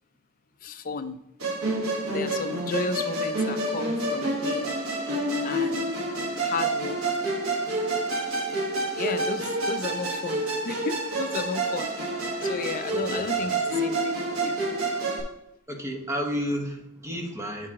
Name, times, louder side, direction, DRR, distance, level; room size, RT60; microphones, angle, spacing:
voice 1, 0.6-1.2 2.1-4.8 5.4-6.0 6.4-7.3 9.0-12.0 12.4-14.6, left 4 dB, 40° left, 9 dB, 0.5 m, -33 dB
Musical instrument, 1.4-15.2, right 2 dB, 80° right, 1.3 m, -28 dB
voice 2, 12.9-13.2 15.7-17.7, equal, 15° right, 2 dB, 1.0 m, -31 dB
8.5 x 4.7 x 3.6 m, 0.86 s
head